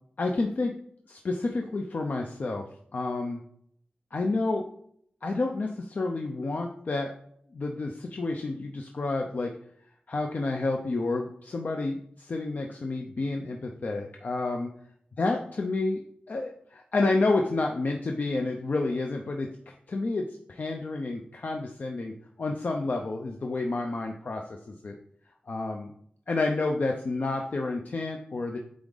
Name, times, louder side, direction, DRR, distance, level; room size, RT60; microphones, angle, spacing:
voice 1, 0.2-0.8 1.1-2.6 2.9-3.4 4.1-4.7 5.2-7.1 7.5-9.5 10.1-14.7 15.2-16.0 16.3-25.0 25.5-25.9 26.3-28.6, left 3 dB, 60° left, 2 dB, 0.6 m, -30 dB
8.5 x 3.6 x 3.9 m, 0.67 s
wide cardioid pair, 90°, 3 cm